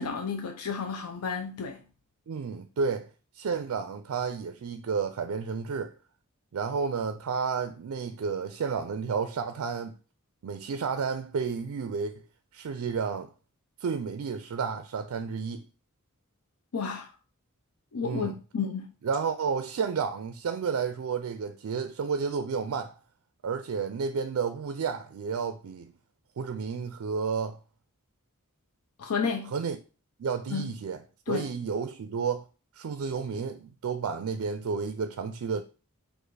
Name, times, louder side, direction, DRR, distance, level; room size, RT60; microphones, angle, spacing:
voice 1, 0.0-1.8 16.7-17.1 17.9-18.9 29.0-29.5 30.5-30.7 31.3-31.5, left 5 dB, 80° left, 0.5 m, -31 dB
voice 2, 2.3-3.1 3.3-5.9 6.5-9.9 10.4-12.1 12.5-13.3 13.8-15.7 18.0-18.4 19.0-23.0 23.4-25.9 26.4-27.6 29.5-29.8 30.2-31.0 31.3-32.4 32.8-35.6, right 5 dB, 65° right, 0.4 m, -31 dB
4.7 x 2.5 x 4.6 m
head